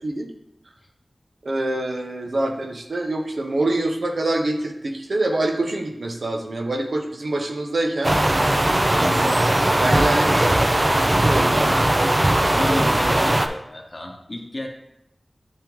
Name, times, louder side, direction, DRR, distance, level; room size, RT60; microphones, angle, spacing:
voice 1, 1.4-8.1 9.8-10.4 11.0-11.8, right 2 dB, 80° right, 3 dB, 0.7 m, -25 dB
sound 1, 8.0-13.5, right 1 dB, 30° right, 0.5 m, -19 dB
voice 2, 8.9-9.8 12.5-14.7, left 1 dB, 40° left, 2 dB, 1.0 m, -32 dB
10.0 x 3.5 x 3.0 m, 0.82 s
wide cardioid pair, 75°, 0 cm